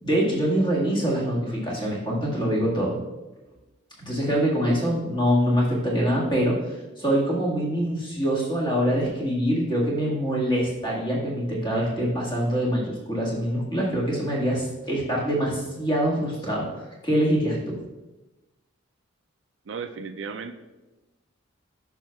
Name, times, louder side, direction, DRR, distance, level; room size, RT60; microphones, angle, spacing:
voice 1, 0.0-2.9 4.0-17.8, equal, 20° left, -4 dB, 1.8 m, -24 dB
voice 2, 19.7-20.5, right 5 dB, 60° right, 7 dB, 0.4 m, -34 dB
10.5 x 5.6 x 2.4 m, 1.1 s
head